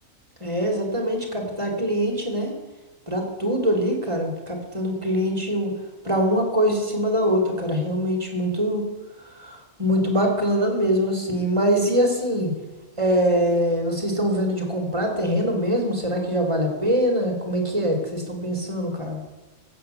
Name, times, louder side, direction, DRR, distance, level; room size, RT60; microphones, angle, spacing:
voice 1, 0.4-2.5 3.1-5.8 6.0-8.9 9.4-12.5 13.0-19.2, equal, 20° right, 2 dB, 2.7 m, -23 dB
15.0 x 8.1 x 6.7 m, 1.1 s
omnidirectional pair, 1.4 m